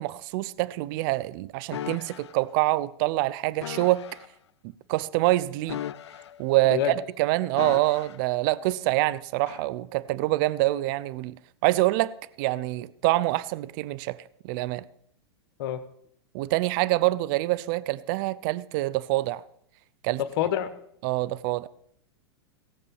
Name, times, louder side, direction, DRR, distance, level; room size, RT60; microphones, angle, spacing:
voice 1, 0.0-4.0 4.9-5.8 6.4-6.8 7.2-11.3 11.6-12.1 12.4-14.2 14.4-14.8 16.3-19.4 20.0-20.2 21.0-21.7, right 18 dB, 50° right, 0.6 m, -25 dB
sound 1, 1.7-2.3 3.6-4.3 5.6-6.6 7.6-8.3 9.5-9.7, left 10 dB, 85° left, 0.6 m, -37 dB
voice 2, 6.7-7.0 15.6-15.8 20.2-20.7, left 10 dB, 60° left, 1.2 m, -27 dB
17.0 x 6.7 x 7.1 m
hypercardioid pair, 120°, 14 cm